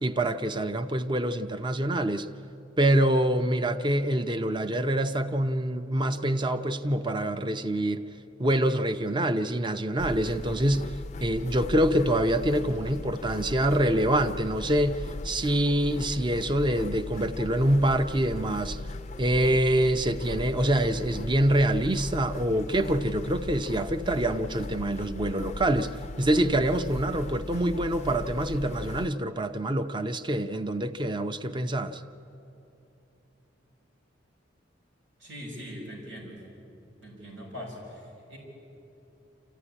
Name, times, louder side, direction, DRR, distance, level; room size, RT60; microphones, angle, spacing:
voice 1, 0.0-2.3 2.8-8.1 8.4-10.9 11.2-18.8 19.2-32.0, right 1 dB, 25° right, 0.6 m, -26 dB
sound 1, 10.0-29.1, left 2 dB, 35° left, 0.4 m, -38 dB
voice 2, 35.2-36.4 37.0-38.4, equal, 85° right, 6.0 m, -41 dB
26.5 x 14.5 x 9.9 m
head